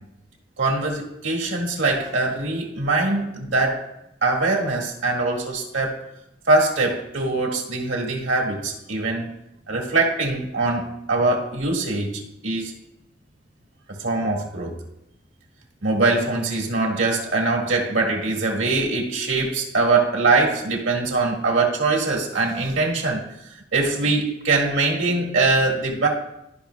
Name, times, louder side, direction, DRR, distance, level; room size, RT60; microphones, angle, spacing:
voice 1, 0.6-3.8 4.2-6.0 6.5-9.3 9.7-12.7 13.9-14.8 15.8-23.2 23.7-26.1, right 3 dB, 80° right, -1 dB, 1.9 m, -22 dB
13.5 x 5.3 x 2.3 m, 0.81 s
head